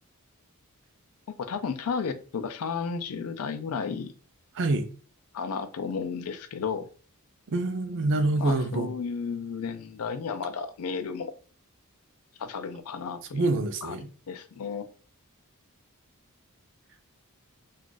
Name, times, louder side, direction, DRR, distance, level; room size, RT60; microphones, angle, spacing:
voice 1, 1.4-4.1 5.3-6.9 8.4-11.3 12.4-13.5 13.8-14.9, left 5 dB, 70° left, 0.4 m, -33 dB
voice 2, 4.6-4.9 7.5-8.9 13.3-14.1, right 2 dB, 55° right, 0.5 m, -26 dB
2.4 x 2.4 x 3.7 m
head